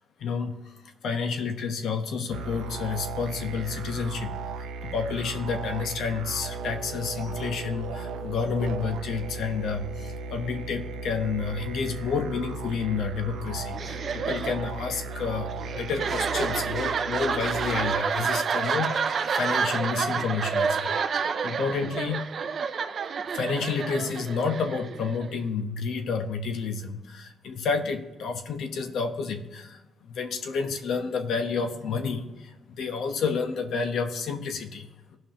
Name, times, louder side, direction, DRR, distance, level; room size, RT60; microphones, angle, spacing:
voice 1, 0.2-0.7 1.0-22.2 23.3-35.2, left 5 dB, 70° left, 6 dB, 1.0 m, -30 dB
sound 1, 2.3-18.0, right 4 dB, 90° right, 0.7 m, -36 dB
sound 2, 13.7-25.4, right 6 dB, 50° right, 0.6 m, -29 dB
16.0 x 5.5 x 2.9 m, 1.1 s
cardioid pair, 90°, 0 cm